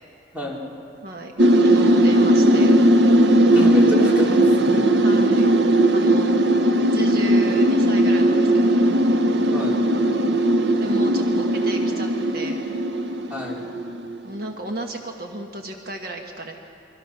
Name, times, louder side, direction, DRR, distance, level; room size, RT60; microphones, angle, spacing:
voice 1, 0.3-0.8 3.5-4.9 9.5-9.8 13.3-13.7, equal, 10° right, -4 dB, 3.5 m, -28 dB
voice 2, 1.0-1.3 1.6-2.7 5.0-5.6 5.9-6.4 6.9-8.8 10.8-12.6 14.2-16.6, right 1 dB, 55° right, 2 dB, 1.5 m, -33 dB
sound 1, 1.4-14.2, right 1 dB, 75° right, 0.9 m, -18 dB
28.5 x 23.0 x 6.0 m, 2.9 s
head